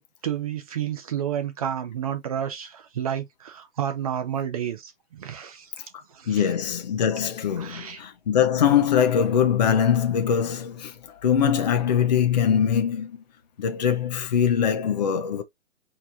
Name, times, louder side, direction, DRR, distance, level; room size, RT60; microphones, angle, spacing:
voice 1, 0.0-5.7 6.1-6.5 7.6-8.0, right 9 dB, 30° right, 0.8 m, -31 dB
voice 2, 6.3-10.9 11.2-13.2 13.6-15.4, left 8 dB, 35° left, 0.7 m, -22 dB
4.4 x 3.1 x 2.7 m
hypercardioid pair, 155°, 39 cm